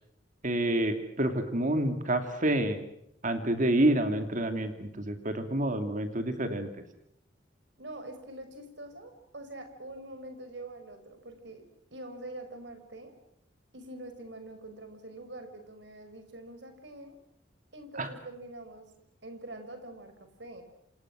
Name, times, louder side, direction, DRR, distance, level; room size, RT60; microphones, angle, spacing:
voice 1, 0.4-2.8 3.2-6.7 18.0-18.1, right 1 dB, 45° right, 7 dB, 2.7 m, -28 dB
voice 2, 7.8-11.6 11.9-13.1 13.7-17.2 17.7-18.9 19.2-20.1 20.4-20.6, right 1 dB, 70° right, 7 dB, 5.5 m, -44 dB
29.0 x 27.0 x 6.3 m, 0.77 s
head